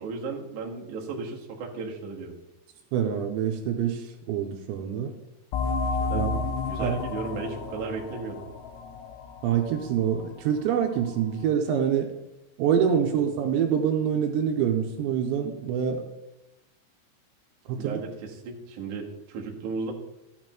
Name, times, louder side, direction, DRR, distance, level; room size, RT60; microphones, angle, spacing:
voice 1, 0.0-2.4 6.1-8.5 17.8-19.9, right 4 dB, 60° right, -2 dB, 2.3 m, -35 dB
voice 2, 2.9-5.1 6.1-6.4 6.8-7.0 9.4-12.1 12.6-16.0 17.7-18.0, right 8 dB, 80° right, 4 dB, 3.0 m, -26 dB
sound 1, 5.5-10.8, left 4 dB, 75° left, 2.7 m, -32 dB
14.0 x 8.3 x 3.0 m, 0.97 s
omnidirectional pair, 5.4 m